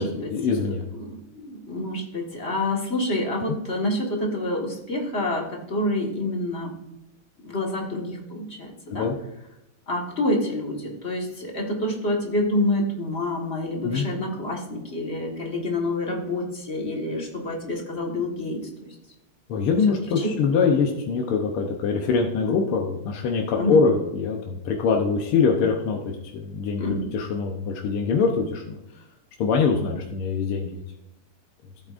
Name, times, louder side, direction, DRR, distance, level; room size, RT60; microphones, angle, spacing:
voice 1, 0.0-0.8 8.9-9.2 13.8-14.1 19.5-28.8 29.4-30.8, left 5 dB, 80° left, 1 dB, 1.8 m, -23 dB
voice 2, 0.9-6.8 7.4-9.1 9.9-18.9 20.2-20.3 23.5-23.8 26.8-27.1, left 1 dB, 30° left, 0 dB, 1.7 m, -28 dB
14.5 x 8.6 x 2.5 m, 0.89 s
omnidirectional pair, 2.4 m